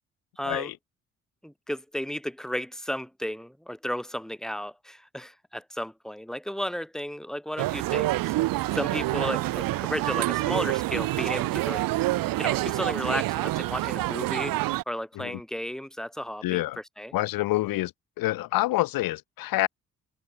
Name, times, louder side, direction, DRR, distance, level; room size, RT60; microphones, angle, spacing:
voice 1, 0.4-0.7 1.4-8.3 8.7-11.8 12.4-14.6 14.9-16.6 17.0-17.1, equal, ahead, 2.5 m, -33 dB
sound 1, 7.6-14.8, right 18 dB, 70° right, 0.9 m, -27 dB
voice 2, 16.4-16.8 17.1-17.9 18.2-19.7, left 17 dB, 75° left, 1.1 m, -27 dB
hypercardioid pair, 45°, 35 cm